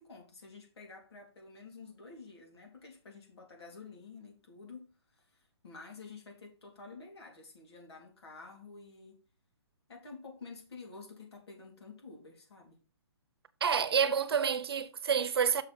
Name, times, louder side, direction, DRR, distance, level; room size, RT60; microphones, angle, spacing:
voice 1, 0.0-9.1 9.9-12.8, left 4 dB, 65° left, 3.7 m, -50 dB
voice 2, 13.6-15.6, right 7 dB, 60° right, 0.9 m, -28 dB
6.6 x 5.2 x 5.8 m
hypercardioid pair, 165°, 14 cm